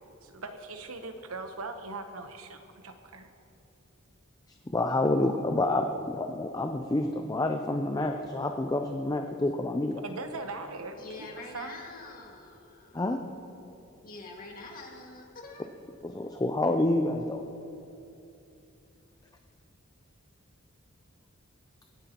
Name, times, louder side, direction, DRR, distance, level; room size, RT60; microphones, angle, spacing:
voice 1, 0.2-3.3 10.0-11.8, right 3 dB, 85° right, 7 dB, 0.9 m, -40 dB
voice 2, 4.7-10.0 12.9-13.2 16.0-17.4, left 2 dB, 20° left, 4 dB, 0.5 m, -28 dB
voice 3, 11.0-13.1 14.0-15.7, left 3 dB, 45° left, -1 dB, 2.0 m, -45 dB
24.0 x 9.2 x 2.9 m, 2.7 s
head